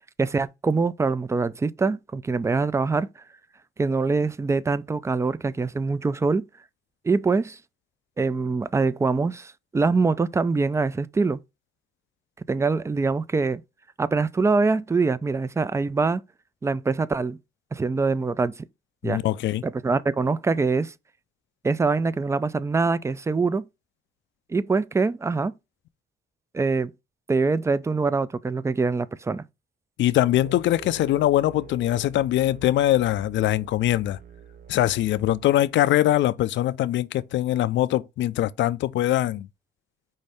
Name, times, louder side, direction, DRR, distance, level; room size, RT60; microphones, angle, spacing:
voice 1, 0.2-3.1 3.8-6.4 7.0-7.6 8.2-11.4 12.5-13.6 14.0-16.2 16.6-17.4 17.7-18.5 19.0-19.2 19.6-20.9 21.6-23.7 24.5-25.5 26.5-26.9 27.3-29.4, right 4 dB, 15° right, 0.3 m, -24 dB
voice 2, 19.0-19.6 30.0-34.2 34.7-39.5, left 13 dB, 70° left, 0.4 m, -22 dB
sound 1, 30.3-35.8, right 7 dB, 45° right, 0.6 m, -46 dB
5.4 x 2.6 x 3.3 m
cardioid pair, 90°, 20 cm